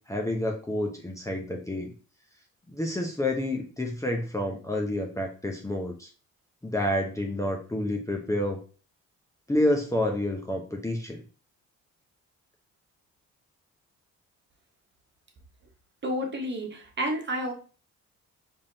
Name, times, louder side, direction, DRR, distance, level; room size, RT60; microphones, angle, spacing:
voice 1, 0.1-1.9 2.7-6.1 6.6-8.6 9.5-11.2, left 1 dB, 10° left, 1 dB, 0.8 m, -29 dB
voice 2, 16.0-17.5, equal, 35° right, 2 dB, 1.4 m, -30 dB
4.9 x 3.7 x 2.7 m, 0.36 s
cardioid pair, 90°, 30 cm